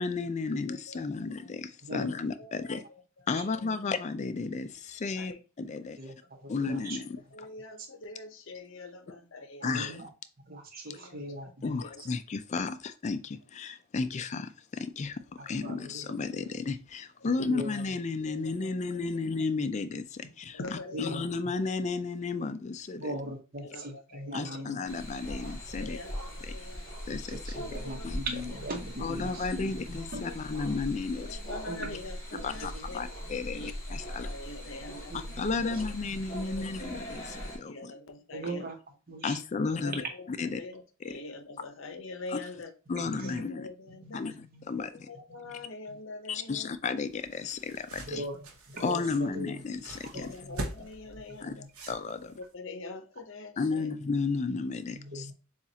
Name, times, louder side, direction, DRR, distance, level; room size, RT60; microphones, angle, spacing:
voice 1, 0.0-2.8 3.3-6.0 6.5-7.5 9.6-10.0 11.6-23.2 24.3-26.0 26.5-26.6 27.1-27.5 28.0-28.5 29.0-31.4 32.3-34.3 35.1-37.9 39.2-40.6 41.0-41.1 42.3-42.6 42.9-43.7 44.1-44.3 44.6-45.1 46.3-48.3 48.8-50.4 51.4-51.5 51.9-52.3 53.6-55.3, left 4 dB, 35° left, 0.4 m, -33 dB
voice 2, 2.4-2.8 5.1-5.4 7.3-10.0 10.8-12.0 17.2-17.3 18.3-18.8 20.5-21.2 23.6-23.8 24.1-24.6 25.8-26.8 27.6-28.1 30.2-30.3 31.3-33.0 33.5-35.1 35.6-35.7 36.4-37.0 37.6-38.7 39.8-39.9 40.6-42.7 43.2-44.3 44.8-46.7 50.1-51.7 52.4-53.9, left 2 dB, 65° left, 0.8 m, -44 dB
voice 3, 6.4-7.0 7.8-7.9 9.6-10.1 10.4-12.1 15.4-16.1 17.5-17.8 20.9-21.5 23.0-24.8 27.1-30.2 31.7-32.0 32.6-32.9 33.2-33.7 34.8-36.0 38.3-38.8 39.1-39.4 39.9-40.0 43.0-43.4 44.0-44.7 45.4-46.0 48.0-48.5 48.7-49.6 50.0-50.6 51.3-51.7 54.9-55.3, right 1 dB, 45° right, 0.9 m, -40 dB
sound 1, 24.8-37.6, equal, 15° left, 1.6 m, -40 dB
sound 2, 47.1-52.5, right 1 dB, 85° right, 0.9 m, -43 dB
7.1 x 2.4 x 2.8 m
head